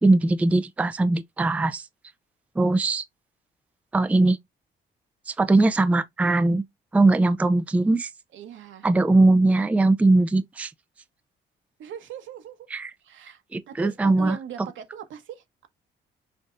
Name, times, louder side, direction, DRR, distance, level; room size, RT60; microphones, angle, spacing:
voice 1, 0.0-1.8 2.6-3.0 3.9-4.4 5.3-6.6 6.9-8.1 8.8-10.7 12.7-12.9 13.5-14.4, right 2 dB, 5° right, 0.4 m, -20 dB
voice 2, 8.3-8.9 11.8-12.6 13.0-15.7, right 9 dB, 75° right, 1.1 m, -40 dB
6.2 x 2.7 x 2.5 m
cardioid pair, 90°, 20 cm